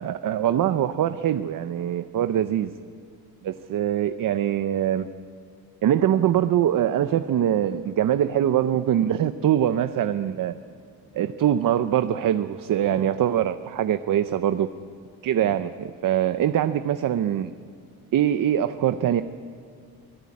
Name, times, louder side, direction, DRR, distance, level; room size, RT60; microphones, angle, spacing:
voice 1, 0.0-2.7 3.4-5.1 5.8-10.5 11.1-14.7 15.2-17.5 18.1-19.2, right 10 dB, 55° right, 10 dB, 0.7 m, -23 dB
25.0 x 19.0 x 8.6 m, 2.3 s
cardioid pair, 160°, 39 cm